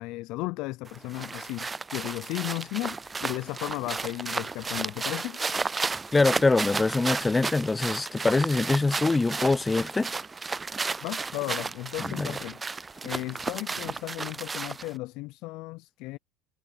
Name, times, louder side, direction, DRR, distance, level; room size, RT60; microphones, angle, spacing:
voice 1, 0.0-5.4 11.0-16.2, left 21 dB, 65° left, 0.5 m, -35 dB
sound 1, 0.9-15.0, right 4 dB, 20° right, 0.3 m, -33 dB
voice 2, 6.1-10.1 12.0-12.3, left 3 dB, 15° left, 0.7 m, -24 dB
hypercardioid pair, 90°, 0 cm